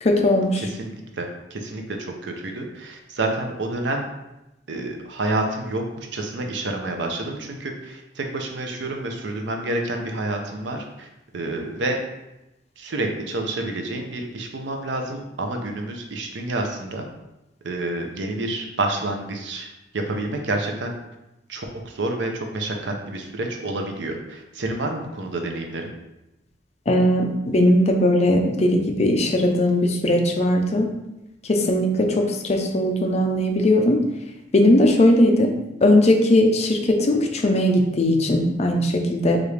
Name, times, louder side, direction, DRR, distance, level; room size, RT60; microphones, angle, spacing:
voice 1, 0.0-0.7 26.9-30.9 31.4-34.0 34.5-35.5 35.8-39.4, left 1 dB, 35° left, 3 dB, 0.5 m, -19 dB
voice 2, 0.6-4.0 4.7-11.1 11.3-12.0 12.8-17.1 17.6-19.7 19.9-21.0 21.5-25.9, right 2 dB, 75° right, 3 dB, 0.6 m, -29 dB
4.8 x 2.5 x 3.2 m, 0.93 s
head